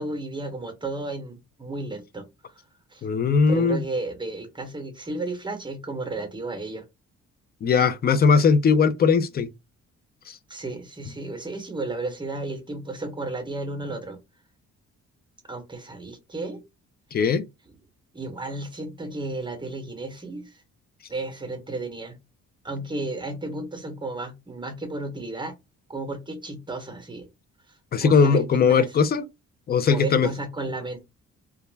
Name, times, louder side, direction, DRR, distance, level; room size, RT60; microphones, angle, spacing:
voice 1, 0.0-2.2 2.9-3.1 3.5-6.8 10.5-14.2 15.5-16.6 18.1-20.6 21.1-22.2 22.6-25.5 25.9-27.3 28.0-29.0 29.9-31.0, right 2 dB, 15° right, 0.9 m, -33 dB
voice 2, 3.0-3.8 7.6-9.5 10.3-10.4 17.1-17.4 27.9-29.2 29.7-30.3, left 5 dB, 35° left, 0.4 m, -19 dB
2.3 x 2.0 x 3.2 m
cardioid pair, 90°, 30 cm